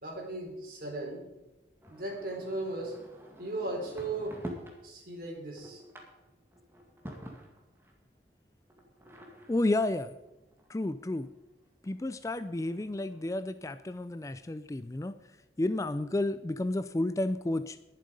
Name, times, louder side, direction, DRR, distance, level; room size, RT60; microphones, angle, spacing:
voice 1, 0.0-1.2 1.9-2.9 3.4-4.3 4.8-5.8, right 2 dB, 50° right, -1 dB, 4.6 m, -36 dB
sound 1, 1.8-4.8 5.2-7.9 8.7-11.3 11.8-11.9 12.2-12.3 12.5-13.3, equal, 15° right, 2.0 m, -48 dB
voice 2, 9.5-10.1 10.7-11.3 11.8-15.1 15.6-17.8, left 2 dB, 20° left, 13 dB, 0.4 m, -31 dB
20.5 x 7.6 x 5.3 m, 0.97 s
head